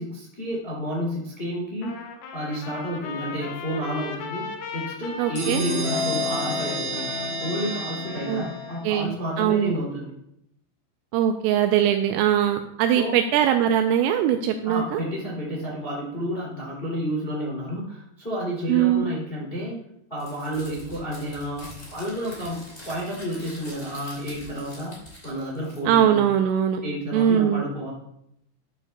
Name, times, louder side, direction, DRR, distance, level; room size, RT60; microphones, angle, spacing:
voice 1, 0.0-4.4 4.7-7.1 7.4-10.1 12.9-13.2 14.6-19.8 20.1-24.9 25.2-26.2 26.8-27.9, equal, 65° left, -4 dB, 0.5 m, -31 dB
Trumpet, 1.8-8.8, left 5 dB, 85° left, 3.8 m, -38 dB
voice 2, 5.2-5.6 8.3-8.4 8.8-9.7 11.1-15.0 18.7-19.1 25.9-26.8 27.1-27.7, right 10 dB, 85° right, 5 dB, 3.1 m, -21 dB
sound 1, 5.3-8.9, left 1 dB, 40° left, 3.4 m, -29 dB
Crumpling crinkling, 20.2-26.1, left 1 dB, 20° left, 2.0 m, -44 dB
12.5 x 8.9 x 2.2 m, 0.77 s
omnidirectional pair, 6.0 m